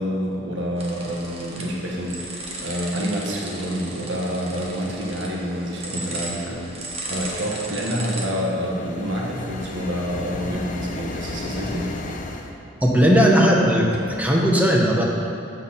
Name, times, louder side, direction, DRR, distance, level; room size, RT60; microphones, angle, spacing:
voice 1, 0.0-11.9, equal, 75° right, -2 dB, 1.3 m, -28 dB
sound 1, 0.8-8.2, right 2 dB, 30° right, 1.1 m, -35 dB
sound 2, 7.9-12.5, left 2 dB, 45° left, 0.6 m, -34 dB
voice 2, 12.8-13.9 14.2-15.0, equal, 10° right, -2 dB, 1.0 m, -17 dB
8.9 x 5.4 x 5.8 m, 2.7 s
head